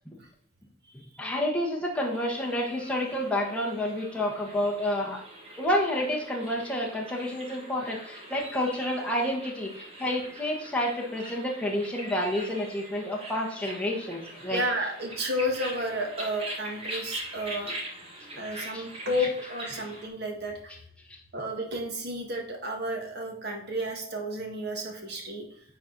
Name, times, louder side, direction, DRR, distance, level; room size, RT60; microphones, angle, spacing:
voice 1, 1.2-5.2 5.6-9.7 10.0-14.6 18.7-18.8, left 1 dB, 5° left, -2 dB, 1.2 m, -29 dB
sound 1, 1.9-20.1, right 1 dB, 30° right, 1.6 m, -42 dB
voice 2, 14.5-17.7 18.4-20.8 21.3-25.6, equal, 50° right, 1 dB, 1.8 m, -32 dB
9.7 x 4.3 x 4.0 m, 0.64 s
head